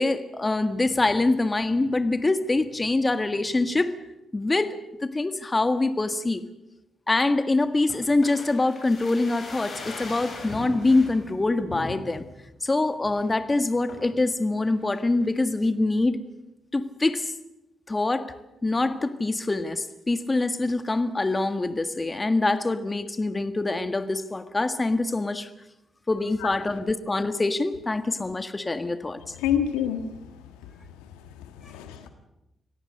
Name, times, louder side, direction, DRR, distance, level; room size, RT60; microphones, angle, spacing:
voice 1, 0.0-3.9 4.3-4.7 5.0-6.4 7.1-12.2 12.6-16.2 16.7-17.3 17.9-18.3 18.6-25.5 26.1-29.2, left 2 dB, 25° left, 10 dB, 1.6 m, -24 dB
sound 1, 7.9-11.1 11.7-12.3 12.7-12.8 13.1-13.4 13.9-14.2 14.7-15.4 15.6-15.7, left 2 dB, 55° left, 7.6 m, -40 dB
voice 2, 29.4-30.0 31.4-32.1, left 9 dB, 80° left, 7 dB, 1.5 m, -27 dB
25.0 x 17.0 x 6.6 m, 0.91 s
hypercardioid pair, 40°, 0 cm